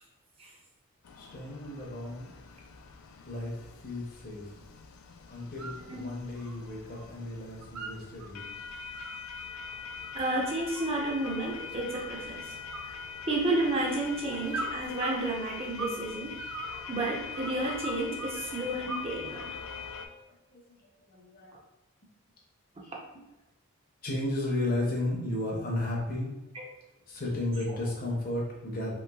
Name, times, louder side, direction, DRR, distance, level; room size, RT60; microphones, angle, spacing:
sound 1, 1.0-20.1, left 6 dB, 70° left, 0.3 m, -43 dB
voice 1, 1.1-2.3 3.2-3.5 3.8-4.5 5.3-8.7 14.3-14.4 19.6-19.8 20.5-20.8 21.1-21.5 22.8-23.2 24.0-26.3 27.1-28.9, left 1 dB, 40° left, -2 dB, 0.7 m, -34 dB
sound 2, 5.4-5.8 6.2-7.1 7.4-8.3 8.7-11.5 11.9-12.4 12.7-13.7 14.5-16.0 16.3-18.4 18.9-19.6, right 2 dB, 85° right, 0.4 m, -40 dB
voice 2, 10.1-12.4 13.3-16.4 16.9-19.5 26.6-26.7, right 2 dB, 25° right, -2 dB, 0.5 m, -31 dB
3.0 x 3.0 x 2.3 m, 1.0 s
head